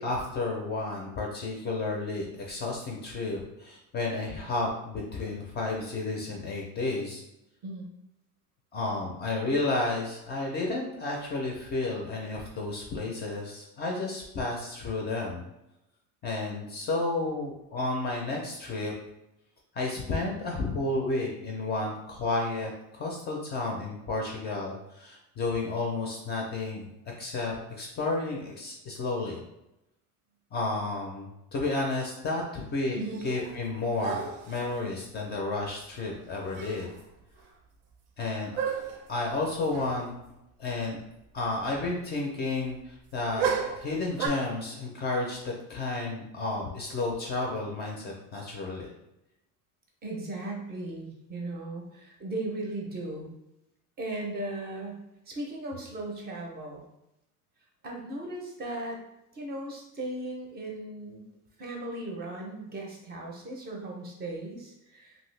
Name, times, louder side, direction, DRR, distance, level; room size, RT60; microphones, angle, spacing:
voice 1, 0.0-7.2 8.7-15.4 16.2-18.9 19.7-26.9 27.2-29.4 30.5-33.0 33.2-36.9 38.2-38.6 39.1-40.1 40.6-41.0 41.3-48.9, left 2 dB, 30° left, 0 dB, 0.4 m, -32 dB
voice 2, 32.9-33.2 50.0-53.3 54.0-56.8 57.8-59.0 59.3-61.2 61.6-65.2, right 2 dB, 25° right, 0 dB, 0.5 m, -37 dB
sound 1, 33.0-33.6 34.0-34.8 36.2-36.3 36.5-37.0 37.4-37.5 38.6-39.1 39.7-40.0 40.2-40.3 43.4-44.3, right 6 dB, 90° right, 0.7 m, -32 dB
2.7 x 2.6 x 3.1 m, 0.87 s
cardioid pair, 165°, 36 cm